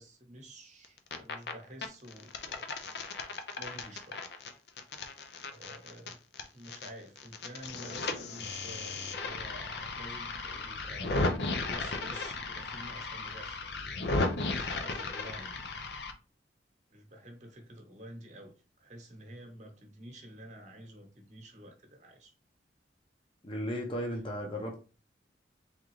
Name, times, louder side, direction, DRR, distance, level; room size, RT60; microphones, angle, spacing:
voice 1, 0.0-2.7 3.6-4.2 5.5-6.2 6.5-11.1 11.7-13.7 14.4-15.7 16.9-22.3, right 1 dB, 40° right, 3 dB, 1.0 m, -49 dB
sound 1, 0.8-1.5 1.8-6.9 7.2-16.1, left 3 dB, 65° left, 0.6 m, -35 dB
voice 2, 23.4-24.8, equal, 30° left, 2 dB, 0.8 m, -35 dB
3.6 x 3.6 x 3.1 m, 0.34 s
head